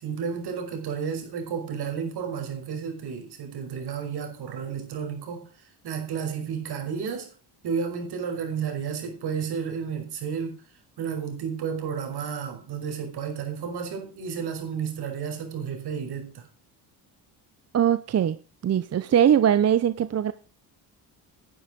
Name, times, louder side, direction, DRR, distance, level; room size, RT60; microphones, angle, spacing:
voice 1, 0.0-7.3 7.6-10.6 11.0-16.5, right 6 dB, 65° right, 5.5 m, -32 dB
voice 2, 17.7-18.4 18.6-20.3, right 9 dB, 40° right, 0.7 m, -21 dB
11.0 x 10.0 x 5.2 m
cardioid pair, 105°, 41 cm